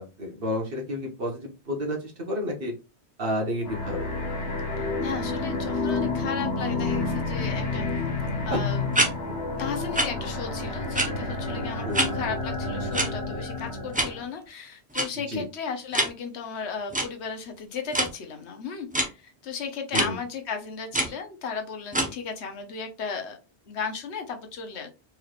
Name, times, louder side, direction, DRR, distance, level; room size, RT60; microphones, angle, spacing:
voice 1, 0.0-2.7 3.2-4.1 8.5-8.6 11.8-12.1 15.3-15.4 19.9-20.1, left 1 dB, 60° right, 0 dB, 1.3 m, -30 dB
sound 1, 3.6-14.3, left 3 dB, 70° left, 1.2 m, -30 dB
voice 2, 4.8-7.9 8.4-8.8 9.6-23.4 23.6-24.9, left 6 dB, 90° left, 5 dB, 1.1 m, -35 dB
sound 2, 8.9-9.1 9.9-10.1 10.9-11.0 11.9-12.1 12.9-13.1 13.9-14.1 14.9-15.0 15.9-16.1 16.9-17.0 17.9-18.1 18.9-19.1 19.9-20.0 20.9-21.1 21.9-22.1, right 1 dB, 10° right, 0.7 m, -24 dB
4.5 x 3.3 x 2.4 m, 0.29 s
omnidirectional pair, 1.1 m